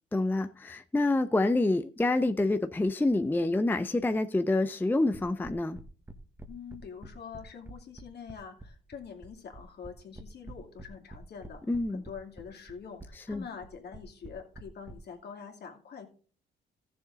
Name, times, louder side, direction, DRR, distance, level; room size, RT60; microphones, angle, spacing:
voice 1, 0.1-5.8 11.7-12.0 13.3-13.4, left 2 dB, 10° left, 0.5 m, -27 dB
sound 1, 5.1-14.9, right 2 dB, 15° right, 1.4 m, -47 dB
voice 2, 6.5-11.6 11.9-16.1, left 6 dB, 55° left, 2.5 m, -45 dB
14.5 x 6.9 x 3.9 m
cardioid pair, 90°, 20 cm